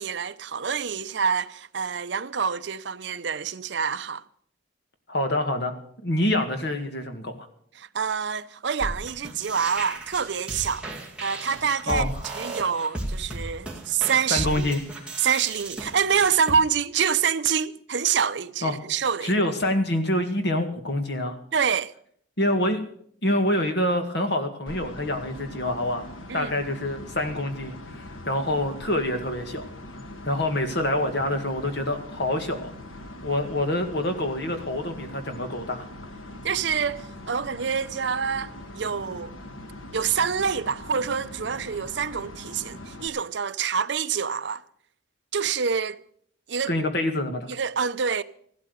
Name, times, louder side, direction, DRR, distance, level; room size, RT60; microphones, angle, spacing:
voice 1, 0.0-4.2 7.8-10.9 11.2-12.1 12.3-14.7 15.2-19.3 21.5-21.9 26.3-26.5 36.4-39.3 39.9-44.6 45.3-46.0 46.5-46.8 47.5-48.2, right 6 dB, 60° right, 0.6 m, -26 dB
voice 2, 5.1-5.7 6.0-7.5 11.9-12.2 14.3-14.8 18.6-18.7 19.2-21.4 22.4-22.8 23.2-29.7 30.3-32.7 33.2-35.9 46.7-47.5, left 1 dB, 55° left, 1.9 m, -26 dB
sound 1, 8.8-16.5, right 2 dB, 5° right, 2.1 m, -35 dB
sound 2, 24.7-43.1, left 1 dB, 85° left, 1.4 m, -42 dB
15.5 x 12.0 x 6.7 m
head